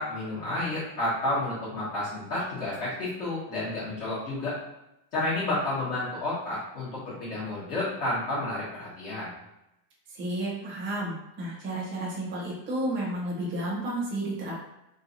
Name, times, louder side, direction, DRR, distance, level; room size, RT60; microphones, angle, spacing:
voice 1, 0.0-4.6 5.1-9.3, left 2 dB, 30° left, -10 dB, 1.3 m, -31 dB
voice 2, 10.1-14.6, right 1 dB, 20° right, -6 dB, 1.0 m, -32 dB
3.1 x 2.3 x 3.9 m, 0.88 s
supercardioid pair, 170°, 50 cm